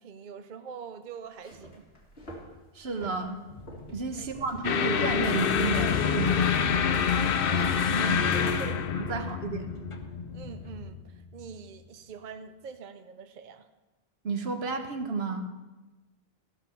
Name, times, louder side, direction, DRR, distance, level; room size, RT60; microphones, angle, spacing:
voice 1, 0.0-1.8 4.1-4.5 7.5-7.7 8.0-8.8 9.1-9.3 10.3-13.7, right 6 dB, 55° right, 8 dB, 0.7 m, -44 dB
sound 1, 1.3-6.4, equal, 80° left, 2.5 m, -49 dB
voice 2, 2.7-3.4 3.9-6.9 7.9-8.5 8.9-9.7 14.2-15.4, right 3 dB, 80° right, 6 dB, 1.3 m, -32 dB
sound 2, 3.5-10.9, left 1 dB, 35° left, 0.9 m, -46 dB
sound 3, 4.6-11.1, left 6 dB, 65° left, 0.8 m, -27 dB
14.5 x 5.9 x 6.9 m, 1.1 s
omnidirectional pair, 1.0 m